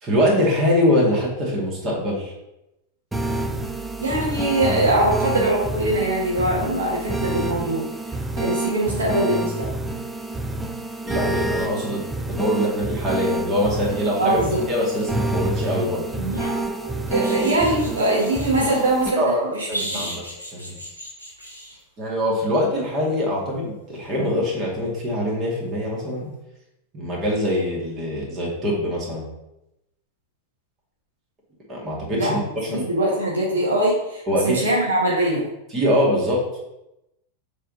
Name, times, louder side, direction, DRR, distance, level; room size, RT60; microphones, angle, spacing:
voice 1, 0.0-2.3 11.0-12.0 12.4-14.4 14.7-16.0 19.2-20.2 20.5-20.8 22.0-26.3 26.9-29.2 31.7-32.4 32.7-32.8 34.3-34.6 35.7-36.4, equal, 25° right, -3 dB, 2.3 m, -23 dB
sound 1, 3.1-19.1, right 2 dB, 10° right, 0.5 m, -28 dB
voice 2, 4.0-7.8 8.4-9.7 14.2-14.6 17.1-20.0 32.2-32.3 32.7-35.5, right 1 dB, 70° right, -4 dB, 1.5 m, -22 dB
sound 2, 16.1-18.8 19.7-21.8 24.4-24.6, right 1 dB, 90° right, 1.8 m, -34 dB
6.5 x 3.6 x 4.1 m, 0.90 s
figure-of-eight pair, 90°, 0 cm